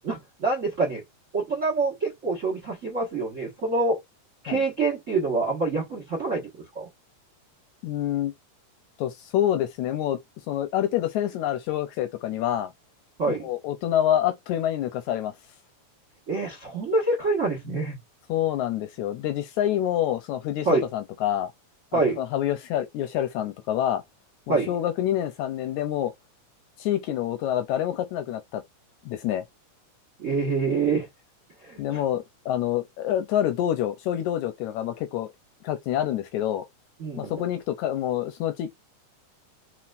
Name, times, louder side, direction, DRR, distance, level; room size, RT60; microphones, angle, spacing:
voice 1, 0.0-1.0 1.3-4.0 4.4-6.5 6.7-6.9 13.2-13.5 16.3-18.0 20.6-20.8 21.9-22.2 24.5-24.7 30.2-31.1 31.6-32.0 37.0-37.3, right 3 dB, 45° right, 1.0 m, -26 dB
voice 2, 7.8-8.3 9.0-10.2 10.5-12.7 13.3-15.3 18.3-21.5 21.9-24.0 24.5-26.1 26.8-28.6 29.1-29.4 31.8-35.3 35.6-36.7 37.2-38.7, left 11 dB, 80° left, 1.8 m, -27 dB
4.4 x 4.0 x 2.5 m
omnidirectional pair, 3.7 m